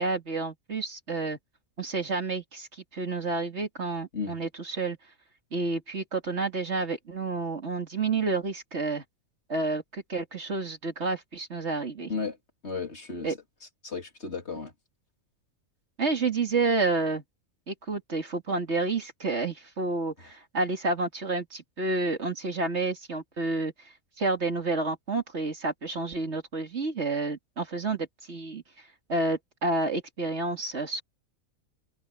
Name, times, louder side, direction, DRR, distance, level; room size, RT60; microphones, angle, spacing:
voice 1, 0.0-1.4 1.8-2.7 2.9-5.0 5.5-9.0 9.5-12.1 13.2-13.4 16.0-17.2 17.7-23.7 24.2-28.6 29.1-31.0, right 3 dB, 50° right, 2.6 m, -29 dB
voice 2, 12.6-13.4 13.8-14.7 20.2-20.3, left 4 dB, 50° left, 3.1 m, -34 dB
omnidirectional pair, 1.4 m